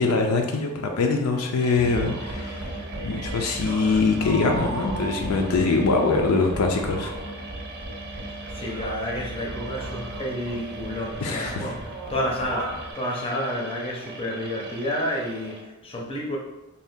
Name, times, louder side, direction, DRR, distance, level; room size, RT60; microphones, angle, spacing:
voice 1, 0.0-2.8 3.0-7.1 11.2-11.7, left 3 dB, 75° left, 2 dB, 0.4 m, -23 dB
sound 1, 1.6-15.6, right 3 dB, 50° right, 0.5 m, -41 dB
sound 2, 1.7-12.9, right 1 dB, 85° right, 0.6 m, -35 dB
voice 2, 8.5-11.8 12.1-16.4, equal, 25° left, -1 dB, 0.6 m, -30 dB
2.7 x 2.3 x 3.5 m, 0.98 s
head